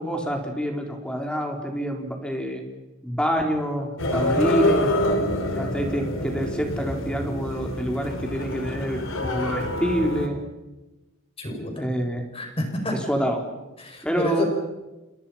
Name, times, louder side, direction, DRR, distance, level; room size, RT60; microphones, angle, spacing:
voice 1, 0.0-2.6 3.0-5.0 5.5-10.4 11.8-12.2 12.9-13.5 14.0-14.4, equal, 5° left, 2 dB, 4.1 m, -27 dB
sound 1, 4.0-10.3, left 1 dB, 70° left, 3.8 m, -26 dB
voice 2, 11.4-12.0 12.3-12.9 13.8-14.4, left 1 dB, 25° left, 3 dB, 6.7 m, -29 dB
29.5 x 28.0 x 5.8 m, 1.1 s
head